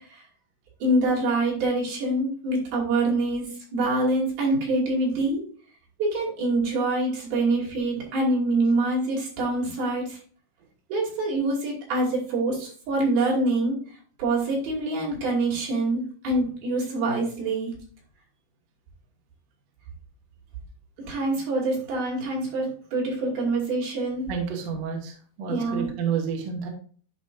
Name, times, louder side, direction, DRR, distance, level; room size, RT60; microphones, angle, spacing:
voice 1, 0.8-5.4 6.0-10.2 10.9-13.8 14.2-17.7 21.0-24.3 25.5-25.9, right 2 dB, 75° right, -3 dB, 4.6 m, -25 dB
voice 2, 24.3-26.7, right 7 dB, 55° right, 1 dB, 2.2 m, -30 dB
11.0 x 5.2 x 2.5 m, 0.43 s
omnidirectional pair, 4.3 m